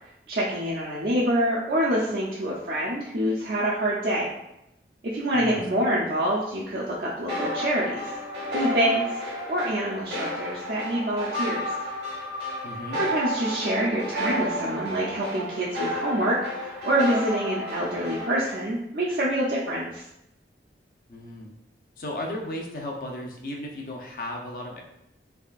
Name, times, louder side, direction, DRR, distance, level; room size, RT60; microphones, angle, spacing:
voice 1, 0.3-4.3 5.0-8.0 8.5-9.2 9.5-11.7 13.0-20.0, right 1 dB, 65° right, -6 dB, 0.5 m, -26 dB
sound 1, 7.3-18.6, equal, 85° right, 1.3 m, -32 dB
voice 2, 12.6-13.0 21.1-21.5 22.0-24.8, left 1 dB, 50° left, 0 dB, 0.6 m, -35 dB
3.5 x 3.3 x 2.4 m, 0.85 s
head